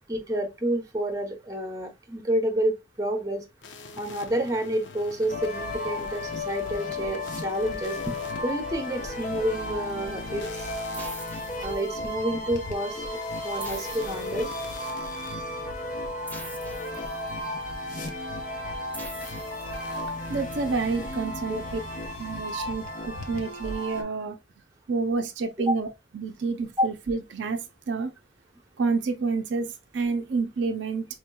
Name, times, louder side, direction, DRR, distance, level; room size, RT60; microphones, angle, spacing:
voice 1, 0.1-3.4 4.0-8.1 8.4-10.5 11.6-13.1 13.4-14.5 21.5-21.6 26.8-26.9, right 1 dB, 20° right, 0.8 m, -29 dB
sound 1, 3.6-15.4 19.2-19.4 19.7-20.0, left 4 dB, 75° left, 0.5 m, -47 dB
sound 2, 5.3-24.0, left 1 dB, 45° left, 0.7 m, -34 dB
sound 3, 10.9-12.3 13.6-15.0 16.3-17.6 18.9-20.3, right 1 dB, 10° left, 1.0 m, -45 dB
voice 2, 20.3-21.8 22.2-22.8 23.3-24.4 24.9-25.9 26.1-28.1 28.8-31.1, right 4 dB, 70° right, 0.4 m, -28 dB
4.5 x 2.8 x 2.2 m
head